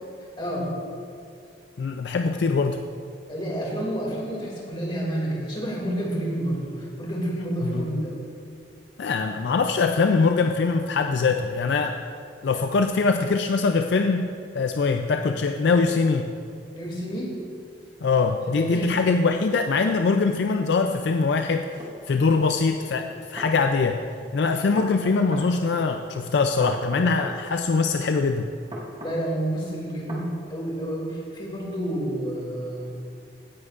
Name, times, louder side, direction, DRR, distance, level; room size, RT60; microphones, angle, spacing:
voice 1, 0.4-0.7 3.3-8.2 16.7-17.3 18.5-19.1 29.0-32.9, right 1 dB, 25° left, -3 dB, 2.4 m, -29 dB
voice 2, 1.8-2.8 7.6-8.0 9.0-12.0 12.4-16.3 18.0-21.7 22.1-24.0 24.3-28.5, left 4 dB, 65° left, 6 dB, 0.4 m, -23 dB
sound 1, 21.8-21.9 23.1-23.5 24.8-25.5 26.6-27.4 28.7-29.2 30.1-30.3, left 1 dB, 25° right, 1.7 m, -37 dB
16.5 x 9.6 x 2.5 m, 2.4 s
head